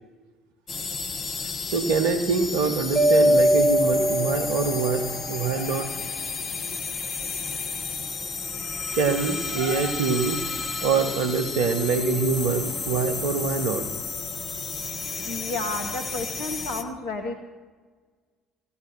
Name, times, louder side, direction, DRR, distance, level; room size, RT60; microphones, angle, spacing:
sound 1, 0.7-16.8, left 4 dB, 40° left, 1.2 m, -32 dB
voice 1, 1.7-5.9 8.9-10.4 10.8-13.9 15.7-16.0, right 4 dB, 65° right, 7 dB, 1.2 m, -25 dB
Mallet percussion, 3.0-5.0, equal, 30° right, 1.9 m, -20 dB
voice 2, 15.2-17.3, left 3 dB, 65° left, 2 dB, 1.0 m, -31 dB
15.5 x 8.6 x 6.7 m, 1.4 s
figure-of-eight pair, 55°, 0 cm